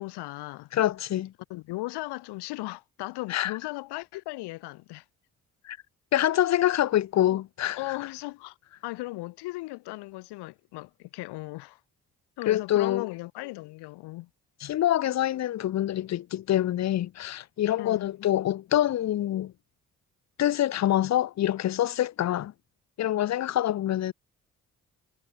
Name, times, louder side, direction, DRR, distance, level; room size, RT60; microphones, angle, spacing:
voice 1, 0.0-0.7 1.5-5.0 7.3-7.4 7.7-8.6 8.8-11.8 12.4-14.3 17.8-18.1, left 20 dB, 80° left, 1.1 m, -37 dB
voice 2, 0.7-1.3 3.3-3.5 5.6-5.8 6.1-7.8 12.5-13.1 14.6-19.5 20.4-22.5 23.0-24.1, left 12 dB, 45° left, 0.5 m, -25 dB
hypercardioid pair, 45°, 40 cm